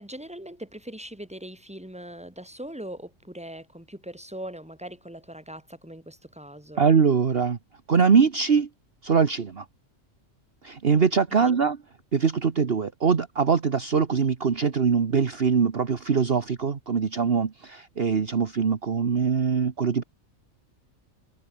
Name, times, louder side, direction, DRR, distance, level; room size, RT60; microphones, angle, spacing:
voice 1, 0.0-6.9 11.3-11.6, right 1 dB, 5° right, 3.4 m, -40 dB
voice 2, 6.8-7.6 7.9-8.7 9.0-9.6 10.6-11.8 12.1-20.0, right 6 dB, 50° right, 1.5 m, -22 dB
omnidirectional pair, 1.4 m